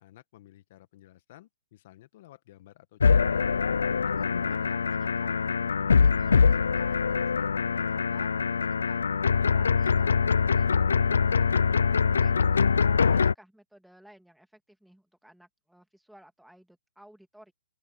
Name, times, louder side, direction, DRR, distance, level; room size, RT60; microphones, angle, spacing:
voice 1, 0.0-3.5, left 15 dB, 40° left, 1.2 m, -54 dB
sound 1, 3.0-13.3, left 5 dB, 90° left, 0.3 m, -23 dB
voice 2, 4.0-9.2 9.5-17.5, right 1 dB, ahead, 2.4 m, -57 dB
open air
hypercardioid pair, 155°, 0 cm